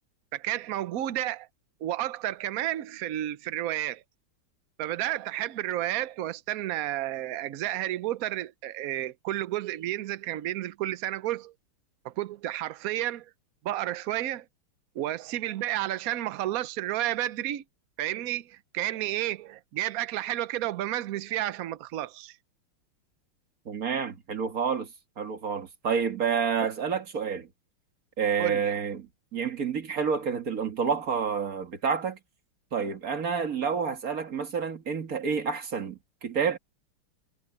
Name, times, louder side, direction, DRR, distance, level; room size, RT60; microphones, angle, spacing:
voice 1, 0.3-1.5 1.8-4.0 4.8-11.5 12.0-13.3 13.6-14.4 14.9-17.6 18.0-22.4 26.6-26.7 28.4-28.8, right 14 dB, 80° right, 0.7 m, -31 dB
voice 2, 23.7-24.9 25.2-27.5 28.2-32.2 32.7-36.6, right 6 dB, 45° right, 2.1 m, -29 dB
omnidirectional pair, 2.4 m